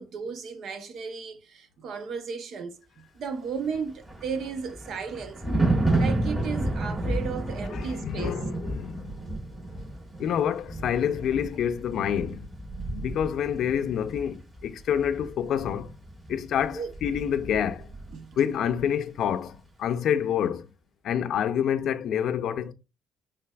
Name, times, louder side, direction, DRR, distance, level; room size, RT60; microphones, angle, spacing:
voice 1, 0.0-5.4 5.9-8.4 16.7-16.9 18.1-18.5, right 5 dB, 70° right, 0.7 m, -35 dB
Thunder, 3.7-18.2 18.5-18.8, right 2 dB, 25° right, 2.7 m, -31 dB
voice 2, 7.7-9.3 10.2-12.5 12.9-15.9 16.3-17.9 18.4-20.6 21.0-22.7, left 9 dB, 75° left, 0.5 m, -27 dB
5.8 x 3.3 x 2.3 m
cardioid pair, 90°, 0 cm